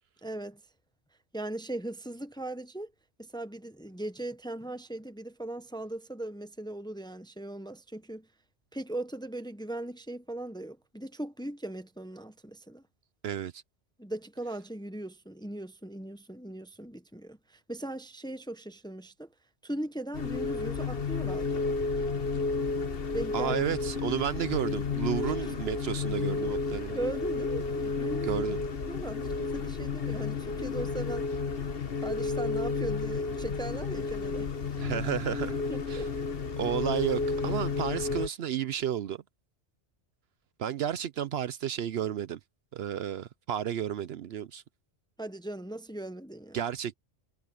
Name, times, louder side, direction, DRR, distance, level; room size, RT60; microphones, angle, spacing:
voice 1, 0.2-0.6 1.3-2.9 3.2-8.3 8.7-12.8 14.0-19.3 19.6-21.6 23.1-23.6 25.2-25.5 26.0-26.1 26.9-28.5 28.9-31.3 32.0-34.5 35.7-36.1 45.2-46.6, right 1 dB, 5° left, 0.7 m, -39 dB
voice 2, 13.2-13.6 23.3-27.0 28.2-28.6 34.8-35.6 35.9-36.1 36.6-39.2 40.6-42.4 42.7-44.6 46.5-47.0, right 10 dB, 65° right, 0.8 m, -32 dB
sound 1, 20.1-38.3, left 4 dB, 55° left, 1.4 m, -32 dB
omnidirectional pair, 1.2 m